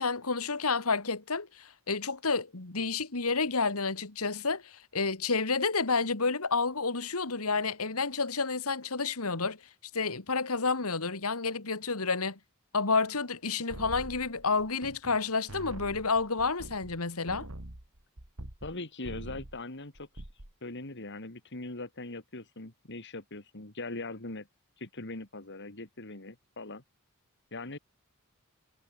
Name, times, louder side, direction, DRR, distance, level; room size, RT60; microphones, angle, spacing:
voice 1, 0.0-9.6 9.9-12.4 12.7-17.5, left 4 dB, 75° left, 2.2 m, -30 dB
sound 1, 13.7-15.2 15.5-18.8 19.0-19.6 20.0-20.5, right 1 dB, 70° right, 2.9 m, -44 dB
voice 2, 18.6-20.3 20.6-24.5 24.8-26.8 27.5-27.8, left 2 dB, 55° left, 2.9 m, -41 dB
head